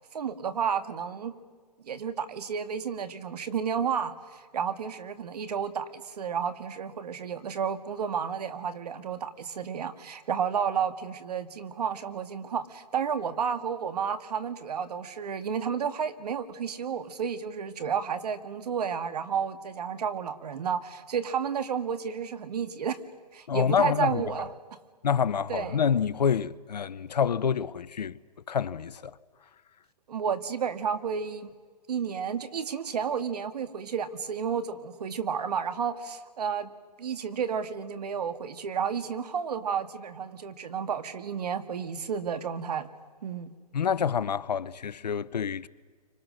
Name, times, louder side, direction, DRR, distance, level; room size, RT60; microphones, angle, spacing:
voice 1, 0.1-1.3 1.9-23.0 23.3-24.5 25.5-25.8 30.1-31.5 31.9-36.7 37.0-42.9 43.2-43.5, right 7 dB, 75° right, 1.9 m, -31 dB
voice 2, 23.5-24.2 25.0-28.2 28.5-29.1 43.7-45.7, left 7 dB, 85° left, 0.8 m, -27 dB
28.5 x 25.5 x 6.4 m
hypercardioid pair, 135°, 21 cm